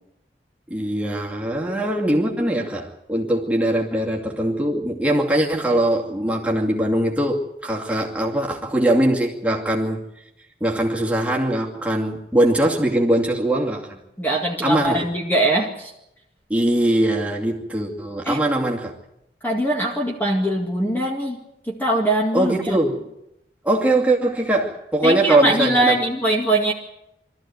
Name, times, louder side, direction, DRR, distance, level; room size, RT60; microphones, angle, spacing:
voice 1, 0.7-10.0 10.6-14.0 14.6-15.1 16.5-18.9 22.3-23.1 23.6-25.9, right 1 dB, 5° right, -2 dB, 2.4 m, -21 dB
voice 2, 14.2-15.9 18.3-18.4 19.4-22.8 25.0-26.7, right 1 dB, 10° left, -1 dB, 2.0 m, -22 dB
24.0 x 14.0 x 9.3 m, 0.86 s
head